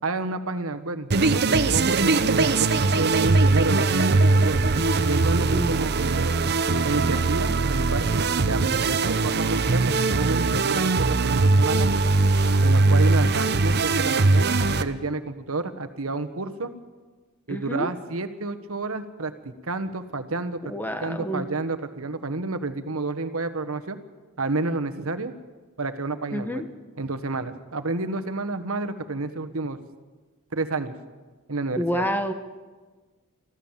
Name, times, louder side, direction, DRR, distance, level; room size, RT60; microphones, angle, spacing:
voice 1, 0.0-4.6 5.0-6.4 6.8-11.9 12.6-16.7 17.5-20.7 21.0-24.0 24.4-25.3 25.8-26.6 27.0-29.8 30.5-30.9 31.5-32.1, right 3 dB, 70° right, 9 dB, 1.4 m, -30 dB
sound 1, 1.1-14.8, right 3 dB, 50° right, 0.8 m, -21 dB
voice 2, 17.5-17.9 20.6-21.5 26.3-26.7 31.8-32.3, equal, 10° left, 8 dB, 1.2 m, -28 dB
25.0 x 15.0 x 7.4 m, 1.3 s
head